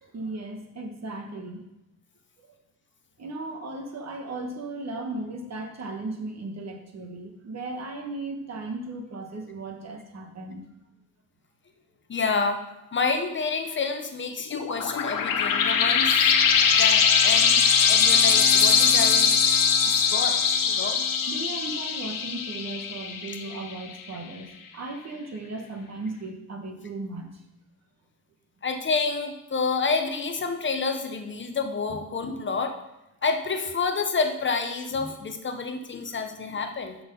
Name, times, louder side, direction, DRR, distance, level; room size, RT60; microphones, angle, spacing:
voice 1, 0.0-1.6 2.4-2.5 3.2-10.6 20.0-20.1 21.3-27.3, right 2 dB, 50° right, 3 dB, 1.3 m, -36 dB
voice 2, 12.1-12.6 12.9-16.3 16.7-19.3 19.8-21.0 23.3-23.4 28.6-32.7 33.2-37.0, left 4 dB, 35° left, 6 dB, 0.7 m, -29 dB
sound 1, 14.5-23.7, left 6 dB, 80° left, 0.9 m, -21 dB
6.1 x 6.0 x 5.4 m, 0.89 s
wide cardioid pair, 135°, 33 cm